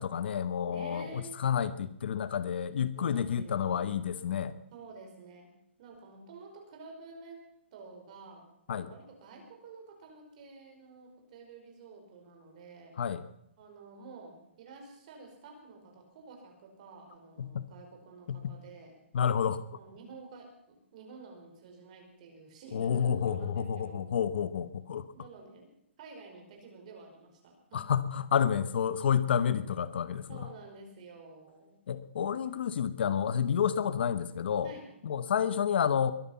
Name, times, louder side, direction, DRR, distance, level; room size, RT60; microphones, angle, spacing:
voice 1, 0.0-4.5 8.7-8.9 13.0-13.2 17.4-17.7 18.3-18.5 19.1-19.6 22.7-25.1 27.7-30.5 31.9-34.7 35.0-36.1, left 8 dB, 55° left, 14 dB, 1.0 m, -30 dB
voice 2, 0.7-1.4 2.9-3.8 4.7-5.5 5.8-7.4 7.7-12.9 13.6-18.9 19.7-24.0 25.1-25.7 26.0-27.9 30.3-31.8 32.2-32.4 34.6-34.9, right 4 dB, 35° right, 2 dB, 5.1 m, -50 dB
22.5 x 11.0 x 5.7 m, 0.76 s
hypercardioid pair, 170°, 7 cm